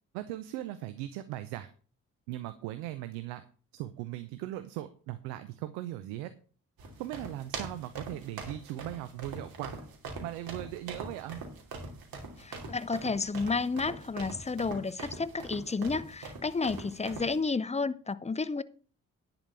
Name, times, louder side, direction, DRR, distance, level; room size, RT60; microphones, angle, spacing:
voice 1, 0.1-1.7 2.3-3.4 3.7-6.3 7.0-9.8 10.2-11.4, right 14 dB, 85° right, 0.7 m, -39 dB
sound 1, 6.8-17.4, right 3 dB, 70° right, 2.8 m, -42 dB
voice 2, 12.4-18.6, left 4 dB, 15° left, 0.7 m, -31 dB
10.5 x 5.1 x 6.8 m
hypercardioid pair, 45°, 38 cm